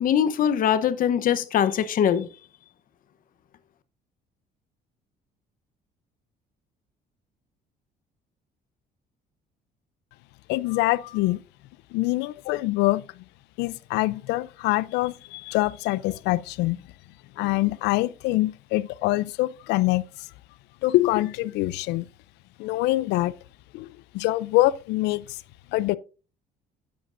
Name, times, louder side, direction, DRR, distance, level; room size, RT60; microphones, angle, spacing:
voice 1, 0.0-2.3, left 9 dB, 55° left, 0.8 m, -22 dB
voice 2, 10.5-11.4 11.9-13.0 13.6-16.8 17.4-20.0 20.8-22.1 22.6-23.3 23.7-25.4 25.7-26.0, left 18 dB, 90° left, 0.5 m, -24 dB
11.0 x 8.1 x 2.5 m
cardioid pair, 110°, 17 cm